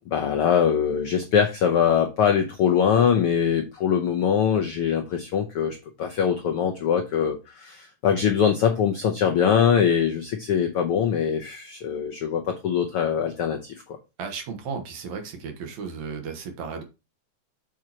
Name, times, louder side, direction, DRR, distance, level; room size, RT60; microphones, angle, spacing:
voice 1, 0.0-14.0, left 8 dB, 80° left, 4 dB, 1.2 m, -23 dB
voice 2, 14.2-16.8, right 5 dB, 65° right, 5 dB, 2.4 m, -34 dB
7.7 x 7.3 x 2.9 m, 0.28 s
omnidirectional pair, 3.7 m